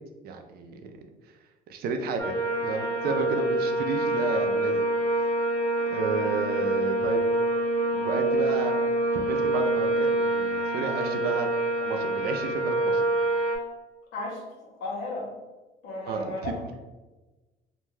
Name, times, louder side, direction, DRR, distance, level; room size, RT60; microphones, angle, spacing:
voice 1, 0.2-0.9 1.7-4.8 5.9-7.3 7.9-8.8 9.1-11.5 11.8-13.0 16.1-16.5, right 4 dB, 65° right, 5 dB, 0.5 m, -31 dB
sound 1, 2.2-13.6, right 1 dB, 20° left, 0.8 m, -26 dB
voice 2, 14.1-14.4 14.8-15.3 15.8-16.7, left 2 dB, 80° left, -2 dB, 1.0 m, -34 dB
2.7 x 2.2 x 3.2 m, 1.2 s
cardioid pair, 110°, 17 cm